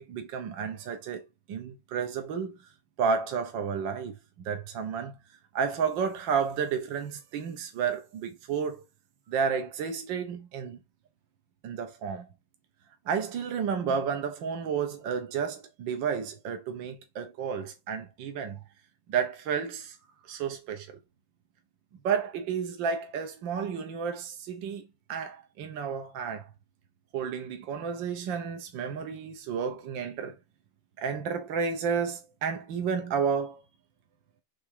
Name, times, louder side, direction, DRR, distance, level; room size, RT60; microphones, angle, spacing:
voice 1, 0.0-2.6 3.0-4.2 4.5-5.2 5.5-8.8 9.3-10.8 11.6-12.3 13.1-18.6 19.1-20.0 20.2-20.9 22.0-26.5 27.1-30.4 31.0-33.6, right 6 dB, 70° right, 1.9 m, -31 dB
7.2 x 3.6 x 4.9 m
omnidirectional pair, 2.1 m